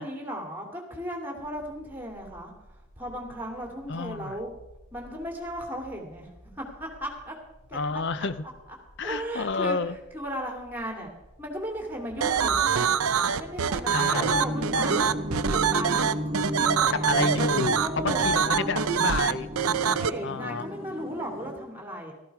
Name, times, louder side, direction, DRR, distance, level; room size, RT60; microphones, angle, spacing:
voice 1, 0.0-2.5 3.0-4.5 4.9-6.3 6.6-7.4 7.7-8.0 9.0-12.9 13.4-15.1 15.5-17.1 17.8-18.9 19.8-22.1, equal, 10° right, 1 dB, 2.6 m, -36 dB
sound 1, 1.4-19.9, equal, 85° left, 3.4 m, -52 dB
voice 2, 3.9-4.4 7.7-8.4 9.0-10.0 13.9-14.3 16.9-19.5 20.2-20.7, left 4 dB, 55° left, 14 dB, 0.6 m, -30 dB
sound 2, 12.2-20.1, right 7 dB, 85° right, 0.6 m, -24 dB
sound 3, 12.8-21.5, equal, 25° right, 1.3 m, -34 dB
14.5 x 13.5 x 4.8 m, 1.0 s
head